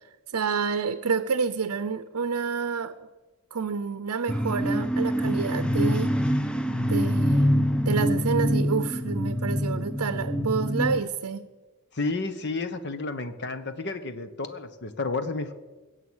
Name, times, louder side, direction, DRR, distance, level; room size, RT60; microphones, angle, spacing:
voice 1, 0.3-3.1 3.5-6.3 6.7-11.5, right 5 dB, 80° right, 11 dB, 0.6 m, -29 dB
sound 1, 4.3-11.0, equal, 5° left, 0.5 m, -25 dB
voice 2, 11.9-15.5, left 3 dB, 50° left, 10 dB, 1.1 m, -31 dB
21.5 x 8.1 x 6.3 m, 1.2 s
head